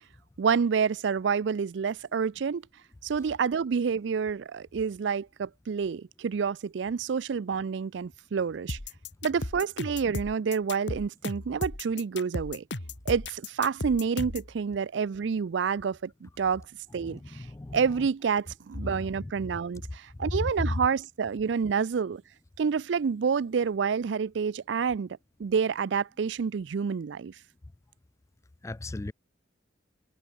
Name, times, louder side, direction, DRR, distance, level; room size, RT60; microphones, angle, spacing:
voice 1, 0.4-2.6 3.0-8.8 9.2-12.6 13.1-16.6 16.9-17.2 17.7-22.2 22.6-25.1 25.4-27.3, right 6 dB, 70° right, 0.4 m, -28 dB
sound 1, 8.7-14.5, left 2 dB, 70° left, 2.5 m, -35 dB
voice 2, 17.0-17.8 18.9-19.3 20.3-20.8 28.6-29.1, left 2 dB, 15° left, 0.3 m, -34 dB
head